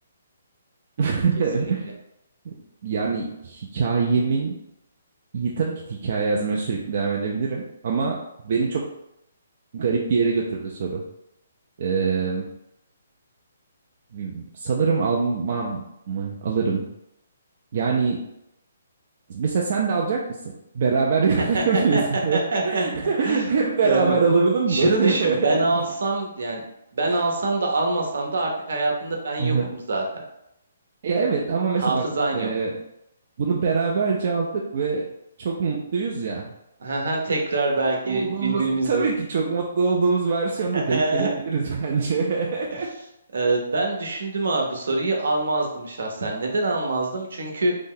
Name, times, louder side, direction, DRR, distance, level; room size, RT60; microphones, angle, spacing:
voice 1, 1.0-2.0 2.5-2.6 2.8-4.5 5.3-8.9 9.7-11.0 11.8-12.5 14.1-16.9 17.7-18.2 19.3-25.8 29.4-29.7 31.0-32.1 32.3-32.7 33.4-35.1 35.4-36.4 38.1-42.9, right 5 dB, 40° right, -1 dB, 0.3 m, -24 dB
voice 2, 21.4-22.0 22.3-22.8 23.2-23.5 23.8-24.1 24.7-26.6 26.9-30.2 31.8-32.5 36.8-39.1 40.7-41.4 43.3-47.7, right 2 dB, 65° right, 1 dB, 0.7 m, -25 dB
2.7 x 2.0 x 3.8 m, 0.82 s
hypercardioid pair, 175°, 0 cm